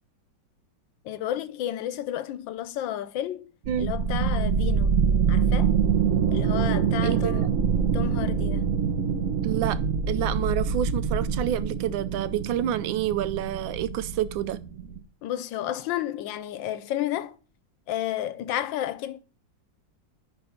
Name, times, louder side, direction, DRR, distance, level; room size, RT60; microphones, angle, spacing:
voice 1, 1.0-3.5 3.8-5.0 5.3-5.8 6.3-7.7 7.9-8.7 15.2-17.4 17.9-19.2, left 12 dB, 80° left, 1.4 m, -31 dB
sound 1, 3.7-15.0, right 6 dB, 55° right, 1.0 m, -25 dB
voice 2, 7.0-7.5 9.4-9.8 10.1-14.6, right 11 dB, 90° right, 1.4 m, -28 dB
10.0 x 3.4 x 5.6 m
omnidirectional pair, 2.0 m